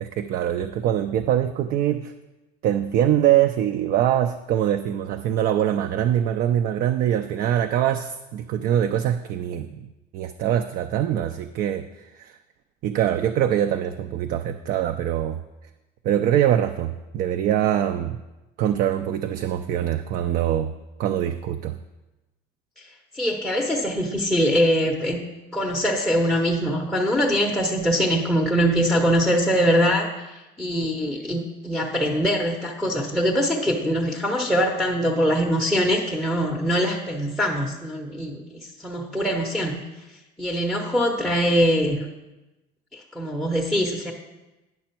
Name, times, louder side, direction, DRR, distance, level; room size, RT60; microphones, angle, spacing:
voice 1, 0.0-2.1 2.6-9.8 10.1-12.4 12.8-15.4 16.0-18.2 18.6-21.8, right 10 dB, 50° right, 8 dB, 0.4 m, -23 dB
voice 2, 23.1-25.2 25.5-39.8 40.4-42.0 42.9-44.1, equal, 5° left, -2 dB, 0.6 m, -23 dB
9.5 x 6.0 x 4.4 m, 1.0 s
cardioid pair, 150°, 19 cm